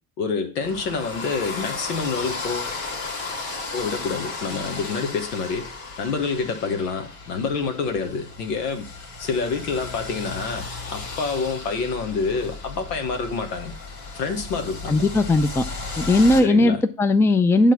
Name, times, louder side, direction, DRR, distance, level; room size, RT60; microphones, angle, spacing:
voice 1, 0.2-2.7 3.7-5.7 6.0-8.8 9.2-13.7 14.1-15.0 16.4-16.8, left 4 dB, 85° left, 1.4 m, -27 dB
sound 1, 0.6-16.4, left 3 dB, 70° left, 2.1 m, -35 dB
voice 2, 14.9-15.6 16.0-17.7, left 2 dB, 5° left, 0.4 m, -18 dB
9.0 x 3.6 x 5.8 m
hypercardioid pair, 75°, 46 cm